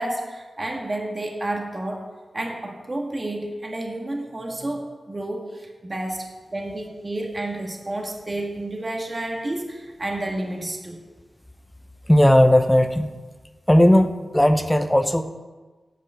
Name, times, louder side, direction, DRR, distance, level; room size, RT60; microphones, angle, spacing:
voice 1, 0.0-2.0 2.3-11.0, right 1 dB, 35° right, 1 dB, 1.7 m, -30 dB
voice 2, 12.1-13.1 13.7-15.2, left 1 dB, 10° left, 9 dB, 0.8 m, -16 dB
9.3 x 7.4 x 6.4 m, 1.3 s
cardioid pair, 65°, 0 cm